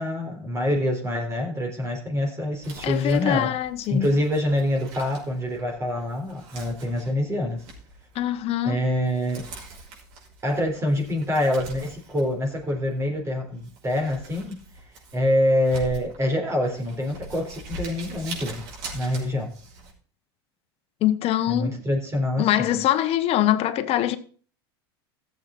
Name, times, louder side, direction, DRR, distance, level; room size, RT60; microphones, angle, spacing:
voice 1, 0.0-3.5 3.9-7.6 8.6-9.5 10.4-14.6 15.1-18.6 18.9-19.5 21.5-22.7, left 1 dB, 20° right, 3.8 m, -25 dB
Crumpling crinkling, 2.5-19.9, right 2 dB, 60° right, 5.5 m, -43 dB
voice 2, 2.8-4.1 8.1-8.8 21.0-21.8 22.4-24.2, left 12 dB, 50° left, 1.3 m, -23 dB
14.5 x 7.9 x 4.2 m
hypercardioid pair, 95°, 13 cm